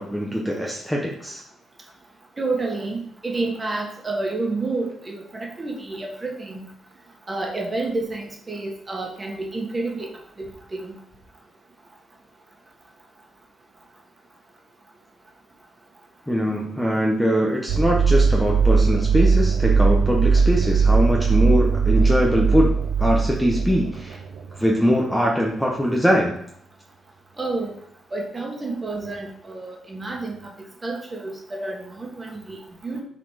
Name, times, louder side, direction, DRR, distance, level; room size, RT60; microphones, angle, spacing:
voice 1, 0.0-1.4 16.3-22.7 23.0-24.2 24.6-26.3, equal, 5° left, -1 dB, 0.9 m, -22 dB
voice 2, 2.4-6.7 7.3-10.1 10.4-11.0 27.4-27.7 28.1-33.0, right 3 dB, 20° right, 0 dB, 1.7 m, -29 dB
sound 1, 17.7-24.9, right 5 dB, 75° right, 0.7 m, -19 dB
7.4 x 4.2 x 5.0 m, 0.68 s
cardioid pair, 145°, 0 cm